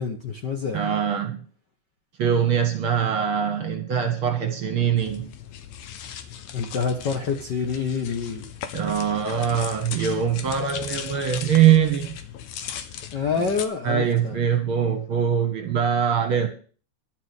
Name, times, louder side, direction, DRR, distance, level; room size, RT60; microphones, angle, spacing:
voice 1, 0.0-0.8 6.5-8.4 13.1-14.4, left 5 dB, 55° left, 3 dB, 1.3 m, -27 dB
voice 2, 0.7-1.4 2.2-5.3 8.7-12.1 13.8-16.5, right 8 dB, 60° right, 6 dB, 1.7 m, -22 dB
sound 1, 5.0-13.7, left 9 dB, 80° left, 2.4 m, -38 dB
11.0 x 6.2 x 8.1 m, 0.41 s
omnidirectional pair, 3.3 m